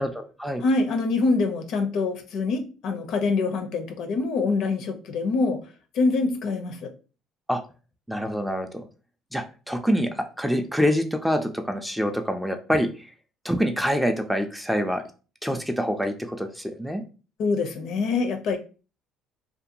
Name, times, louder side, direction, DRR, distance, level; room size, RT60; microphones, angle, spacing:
voice 1, 0.0-0.6 7.5-7.6 8.1-8.8 9.3-12.9 13.4-15.0 15.4-17.0, equal, ahead, 5 dB, 0.3 m, -26 dB
voice 2, 0.6-5.6 5.9-6.9 17.4-18.6, left 3 dB, 65° left, 6 dB, 0.5 m, -25 dB
2.5 x 2.2 x 2.7 m, 0.35 s
cardioid pair, 110°, 0 cm